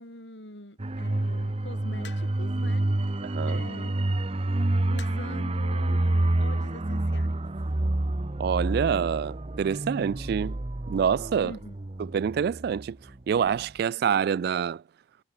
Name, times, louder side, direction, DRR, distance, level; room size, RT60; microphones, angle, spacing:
voice 1, 0.0-3.2 3.5-4.0 4.4-4.5 4.9-7.3 11.4-11.8, left 1 dB, 90° left, 6.1 m, -44 dB
sound 1, 0.8-13.1 13.4-13.6, right 1 dB, 35° right, 0.8 m, -28 dB
sound 2, 2.0-2.6 3.8-4.0 5.0-5.4 6.4-6.7, left 5 dB, 70° left, 5.9 m, -48 dB
voice 2, 3.2-3.6 8.4-10.6 10.9-11.5 12.0-13.0 13.3-14.8, right 7 dB, 60° right, 0.3 m, -26 dB
head